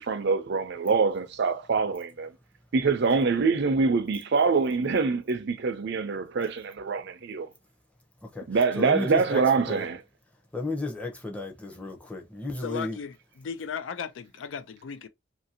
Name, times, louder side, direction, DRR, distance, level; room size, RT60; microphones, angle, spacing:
voice 1, 0.0-2.3 2.7-7.5 8.5-10.0, right 4 dB, 60° right, 0.5 m, -25 dB
voice 2, 8.8-9.9 10.5-13.0, left 2 dB, 5° left, 0.7 m, -33 dB
voice 3, 12.6-15.1, left 6 dB, 75° left, 0.4 m, -36 dB
2.8 x 2.6 x 2.7 m
head